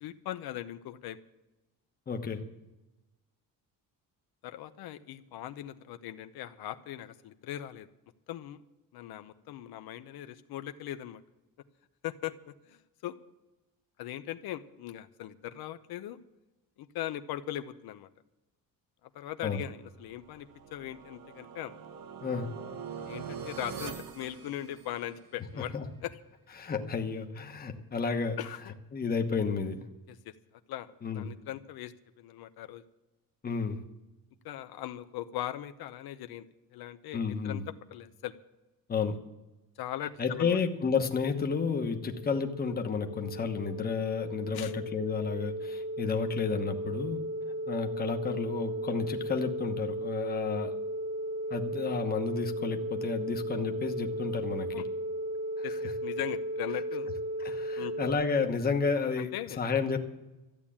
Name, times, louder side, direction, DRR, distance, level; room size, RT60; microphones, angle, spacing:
voice 1, 0.0-1.2 4.4-7.9 8.3-8.6 8.9-11.2 12.0-13.2 14.0-16.2 16.8-18.1 19.0-21.7 23.1-25.7 26.0-26.2 28.4-28.7 30.1-32.8 34.4-36.5 36.7-37.6 37.9-38.3 39.8-40.6 44.5-44.7 54.1-54.2 54.7-54.9 55.6-57.1 57.8-57.9 59.2-59.6, left 12 dB, 80° left, 10 dB, 0.8 m, -40 dB
voice 2, 2.1-2.4 19.4-19.6 22.2-22.5 25.6-25.8 26.6-28.4 28.9-29.9 31.0-31.2 33.4-33.8 37.1-37.6 38.9-39.1 40.2-47.2 47.7-50.7 51.5-54.7 57.4-59.3 59.6-60.0, left 5 dB, 25° left, 5 dB, 1.1 m, -31 dB
sound 1, 20.1-25.3, right 6 dB, 75° right, 1.5 m, -43 dB
sound 2, 41.2-58.1, right 1 dB, 15° right, 0.5 m, -36 dB
14.0 x 8.9 x 8.6 m, 1.0 s
cardioid pair, 170°, 36 cm